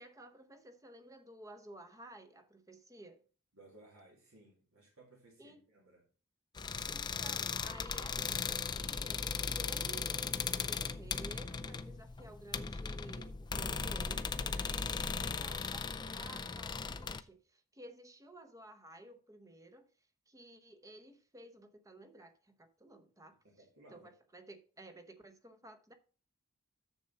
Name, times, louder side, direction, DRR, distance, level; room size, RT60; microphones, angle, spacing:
voice 1, 0.0-3.2 5.4-5.6 6.8-19.9 20.3-23.4 23.9-25.9, right 1 dB, 15° right, 0.9 m, -54 dB
voice 2, 3.5-6.1 23.4-24.1, right 2 dB, 65° right, 2.4 m, -60 dB
sound 1, 6.6-17.2, left 5 dB, 20° left, 0.4 m, -37 dB
7.0 x 6.8 x 5.3 m
head